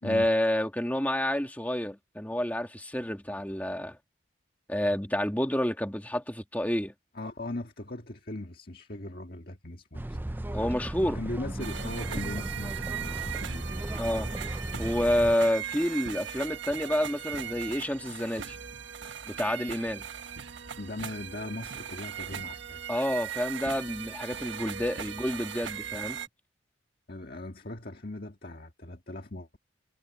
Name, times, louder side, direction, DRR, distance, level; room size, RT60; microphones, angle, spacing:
voice 1, 0.0-4.0 4.7-6.9 10.5-11.2 14.0-14.3 14.8-18.6 19.3-20.0 22.9-26.2, equal, 10° left, 2.0 m, -29 dB
voice 2, 7.1-10.4 11.0-13.9 20.8-22.9 27.1-29.6, left 1 dB, 50° left, 1.7 m, -39 dB
sound 1, 9.9-15.4, right 1 dB, 10° right, 0.4 m, -35 dB
sound 2, 11.6-26.3, right 8 dB, 70° right, 1.2 m, -39 dB
head